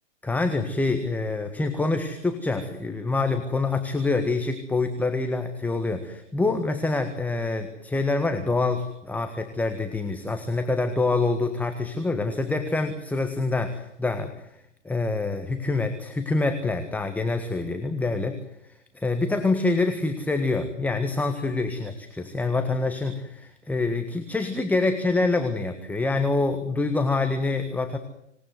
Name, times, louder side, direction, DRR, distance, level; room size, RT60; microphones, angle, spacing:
voice 1, 0.2-14.5 14.8-18.4 18.9-28.0, left 3 dB, 5° left, 6 dB, 1.6 m, -26 dB
26.0 x 19.0 x 9.6 m, 0.78 s
hypercardioid pair, 130°, 37 cm